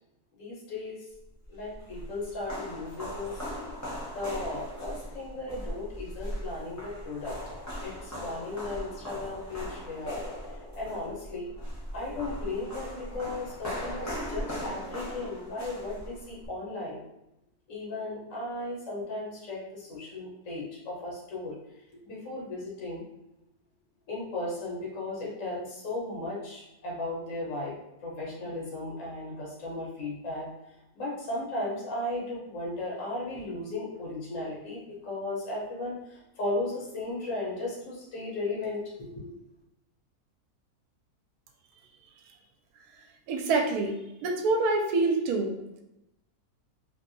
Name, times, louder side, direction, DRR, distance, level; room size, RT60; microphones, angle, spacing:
voice 1, 0.4-1.0 1.5-3.4 4.1-7.3 7.8-10.2 10.7-11.5 11.9-17.0 17.7-21.5 22.0-23.0 24.1-27.8 28.0-30.5 31.0-39.4, left 2 dB, 60° left, -5 dB, 1.3 m, -36 dB
sound 1, 1.4-16.5, equal, 25° left, 0.3 m, -39 dB
voice 2, 43.3-43.9 44.2-45.6, right 3 dB, 80° right, 4 dB, 1.1 m, -26 dB
3.0 x 2.6 x 2.6 m, 0.87 s
omnidirectional pair, 1.6 m